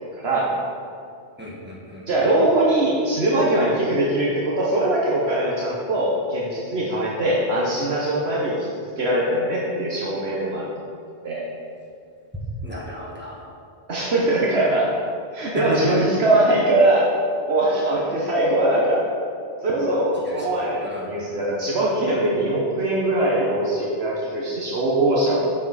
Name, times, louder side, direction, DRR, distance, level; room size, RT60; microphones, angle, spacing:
voice 1, 0.2-0.5 2.1-8.7 9.0-10.7 11.2-11.4 13.9-14.9 15.3-17.1 17.5-19.0 19.6-25.5, right 1 dB, 70° right, -5 dB, 1.3 m, -21 dB
voice 2, 1.4-2.0 12.6-13.4 15.5-16.0 20.2-20.5 20.8-21.1, equal, 10° right, -5 dB, 1.5 m, -31 dB
7.6 x 6.9 x 4.1 m, 2.5 s
omnidirectional pair, 1.1 m